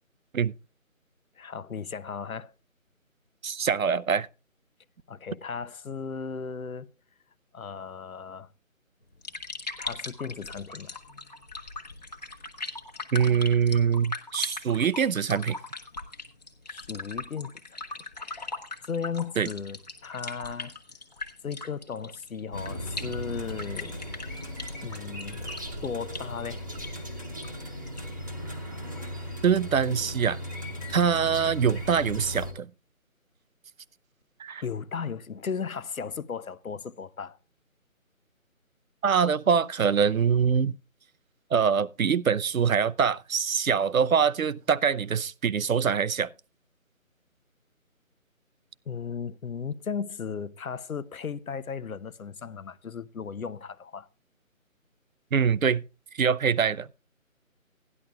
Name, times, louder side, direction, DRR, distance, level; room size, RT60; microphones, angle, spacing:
voice 1, 1.4-2.5 5.1-6.9 7.5-8.5 9.8-11.0 16.7-17.6 18.2-18.5 18.8-20.7 21.4-24.0 24.8-25.5 25.8-26.6 34.6-37.4 48.9-54.1, left 6 dB, 80° left, 0.9 m, -36 dB
voice 2, 3.4-4.3 13.1-15.6 19.4-19.5 29.4-30.4 30.9-32.7 34.4-34.6 39.0-40.7 41.5-46.3 55.3-55.8 56.1-56.9, right 7 dB, 75° right, 0.7 m, -24 dB
sound 1, 9.0-28.2, left 3 dB, 30° left, 1.2 m, -40 dB
sound 2, 22.5-32.5, equal, 15° right, 1.0 m, -37 dB
17.0 x 11.0 x 2.4 m
figure-of-eight pair, 170°, 41 cm